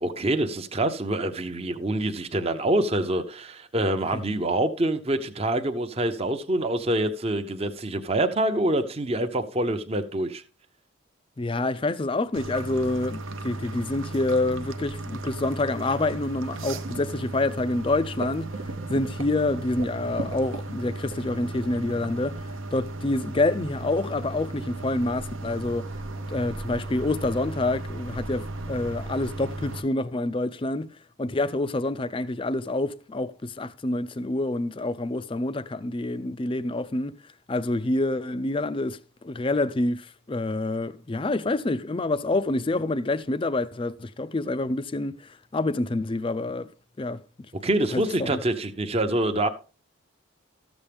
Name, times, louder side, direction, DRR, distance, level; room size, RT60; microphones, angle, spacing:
voice 1, 0.0-10.4 47.6-49.5, right 1 dB, 25° right, 0.7 m, -26 dB
voice 2, 11.4-18.5 18.9-25.9 26.3-46.7 47.0-47.2 47.9-48.4, left 2 dB, 25° left, 0.4 m, -27 dB
sound 1, 12.3-29.8, right 2 dB, 65° right, 0.8 m, -35 dB
14.0 x 7.2 x 3.4 m
head